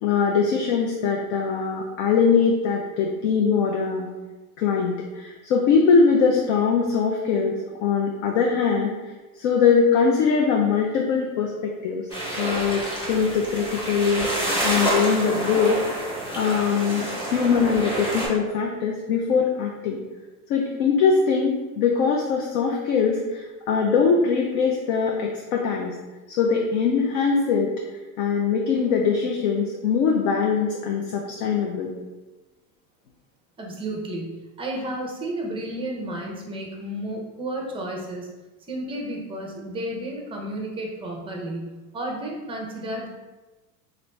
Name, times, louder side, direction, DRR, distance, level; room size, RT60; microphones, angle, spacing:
voice 1, 0.0-4.1 4.6-8.9 9.4-12.1 12.4-16.1 16.4-20.0 20.5-25.9 26.3-27.8 28.2-31.9, left 5 dB, 60° left, 0 dB, 0.5 m, -22 dB
sound 1, 12.1-18.3, right 1 dB, 10° left, 1.0 m, -28 dB
voice 2, 33.6-38.3 38.7-43.1, right 1 dB, 10° right, -1 dB, 0.5 m, -32 dB
3.0 x 2.6 x 3.1 m, 1.1 s
supercardioid pair, 120°, 45 cm